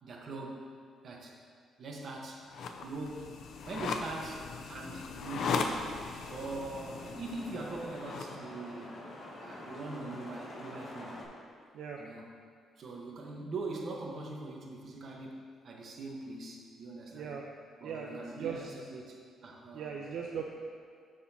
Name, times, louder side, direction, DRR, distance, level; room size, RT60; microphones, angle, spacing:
voice 1, 0.0-0.6 1.0-1.4 1.8-2.5 2.8-5.7 6.3-9.0 9.4-11.2 11.9-12.3 12.8-17.4 17.8-19.2 19.4-19.9, right 2 dB, 55° right, -1 dB, 1.1 m, -42 dB
sound 1, 2.5-8.3, left 4 dB, 70° left, 0.5 m, -38 dB
sound 2, 6.2-11.3, left 1 dB, 50° left, 1.7 m, -47 dB
voice 2, 17.1-17.4 17.8-18.6 19.7-20.5, right 7 dB, 75° right, 0 dB, 0.5 m, -39 dB
12.5 x 4.2 x 2.8 m, 2.2 s
cardioid pair, 90°, 0 cm